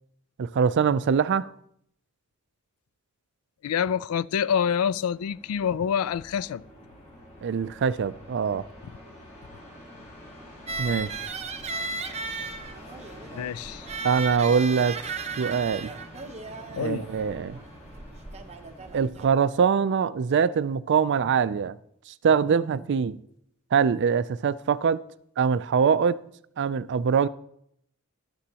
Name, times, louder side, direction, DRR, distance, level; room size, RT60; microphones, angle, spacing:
voice 1, 0.4-1.5 7.4-8.6 10.8-11.3 14.0-15.0 15.4-15.9 16.7-17.6 18.9-21.8 22.2-23.2 23.7-25.0 25.4-26.2 26.6-27.3, right 6 dB, 55° right, 0.4 m, -23 dB
voice 2, 3.6-6.6 13.3-13.9 16.7-17.1, left 8 dB, 75° left, 0.3 m, -27 dB
sound 1, 4.6-18.9, equal, 30° left, 3.8 m, -47 dB
sound 2, 10.7-19.3, right 3 dB, 30° right, 0.8 m, -36 dB
13.0 x 11.0 x 2.9 m
head